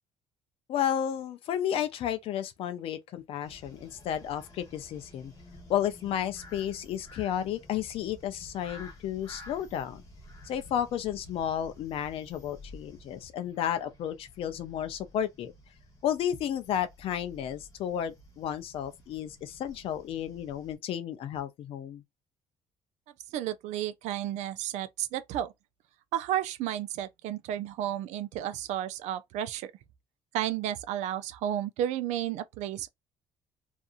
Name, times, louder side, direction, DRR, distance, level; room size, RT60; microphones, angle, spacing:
voice 1, 0.7-5.3 5.7-10.0 10.4-15.5 16.0-22.0, left 10 dB, 50° left, 0.5 m, -32 dB
sound 1, 3.4-20.8, left 1 dB, 25° left, 1.0 m, -52 dB
voice 2, 23.3-25.5 26.1-29.7 30.3-32.9, right 11 dB, 70° right, 0.4 m, -32 dB
2.7 x 2.4 x 2.4 m
cardioid pair, 180°, 12 cm